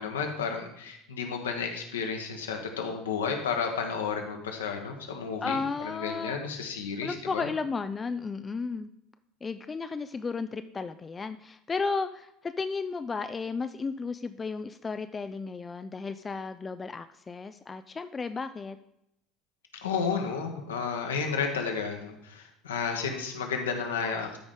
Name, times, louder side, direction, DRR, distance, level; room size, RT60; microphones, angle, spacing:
voice 1, 0.0-7.5 19.8-24.4, left 5 dB, 75° left, 3 dB, 1.1 m, -32 dB
voice 2, 5.4-6.4 7.0-8.9 9.4-18.8, left 4 dB, 25° left, 10 dB, 0.3 m, -34 dB
13.0 x 5.0 x 3.7 m, 0.80 s
figure-of-eight pair, 65°, 0 cm